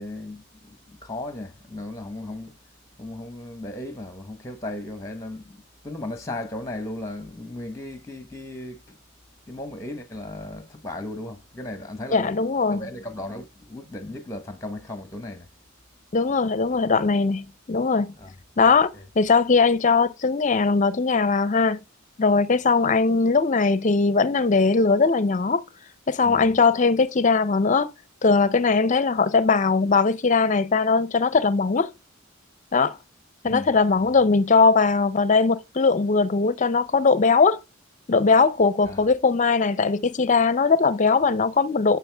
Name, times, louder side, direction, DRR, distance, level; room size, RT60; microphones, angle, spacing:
voice 1, 0.0-2.6 3.0-9.0 9.5-12.4 12.7-15.5 18.2-18.3 18.9-19.0 26.2-26.5 33.4-33.7 34.0-34.2 38.8-39.1, left 1 dB, 15° left, 1.0 m, -36 dB
voice 2, 12.1-12.8 16.1-18.1 18.6-18.9 19.2-21.8 22.2-25.6 26.1-27.9 28.2-31.9 32.7-33.0 33.4-37.6 38.1-42.0, left 4 dB, 35° left, 0.6 m, -20 dB
11.0 x 6.1 x 3.4 m
head